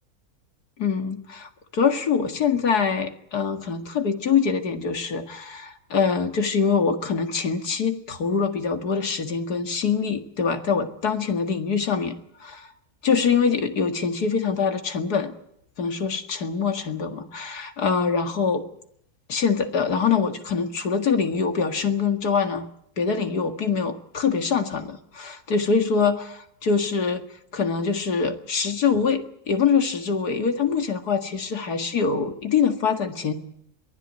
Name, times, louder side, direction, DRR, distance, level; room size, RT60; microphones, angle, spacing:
voice 1, 0.8-12.7 13.0-15.3 15.8-18.6 19.3-22.6 23.0-27.2 27.5-33.3, left 6 dB, 85° left, 6 dB, 2.4 m, -24 dB
22.5 x 16.0 x 9.4 m, 0.73 s
omnidirectional pair, 1.6 m